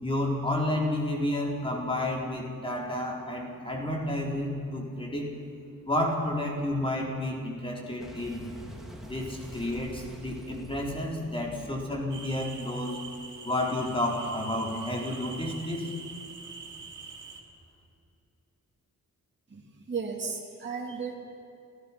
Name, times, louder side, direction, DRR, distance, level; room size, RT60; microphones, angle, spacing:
voice 1, 0.0-5.3 5.9-8.5 9.1-13.0 13.4-15.9, left 1 dB, 15° left, -1 dB, 4.1 m, -31 dB
Boom, 8.0-13.2, equal, ahead, 2.9 m, -46 dB
sound 1, 12.1-17.4, right 5 dB, 65° right, 3.0 m, -44 dB
voice 2, 19.5-21.1, right 5 dB, 35° right, -2 dB, 2.5 m, -35 dB
29.0 x 17.0 x 6.0 m, 2.7 s
wide cardioid pair, 150°, 33 cm